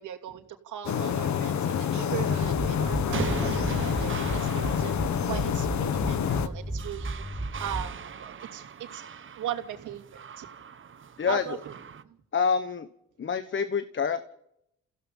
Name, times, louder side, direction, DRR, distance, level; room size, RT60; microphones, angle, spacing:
voice 1, 0.0-5.0 5.3-9.0 9.4-10.5 11.2-11.7 12.0-12.2, right 10 dB, 80° right, 5 dB, 2.7 m, -38 dB
sound 1, 0.8-6.5, left 8 dB, 65° left, 1.6 m, -28 dB
sound 2, 2.4-8.2, right 2 dB, 5° right, 1.6 m, -35 dB
sound 3, 3.0-12.0, right 7 dB, 40° right, 1.1 m, -41 dB
voice 2, 12.3-12.9 13.2-14.2, left 6 dB, 40° left, 11 dB, 1.3 m, -26 dB
30.0 x 16.0 x 5.6 m, 0.80 s
cardioid pair, 90°, 30 cm